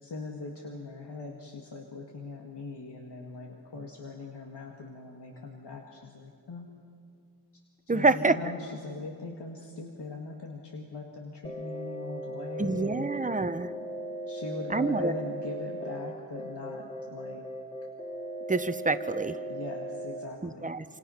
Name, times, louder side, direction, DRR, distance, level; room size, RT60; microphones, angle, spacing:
voice 1, 0.0-6.7 7.9-13.2 14.3-17.4 19.5-20.7, left 3 dB, 90° left, 1 dB, 2.1 m, -40 dB
voice 2, 7.9-8.3 12.6-13.7 14.7-15.1 18.5-19.4 20.4-20.8, right 3 dB, 20° right, 11 dB, 0.8 m, -27 dB
sound 1, 11.4-20.2, right 1 dB, 15° left, 2.8 m, -38 dB
27.5 x 27.0 x 5.8 m, 2.4 s
wide cardioid pair, 110°, 40 cm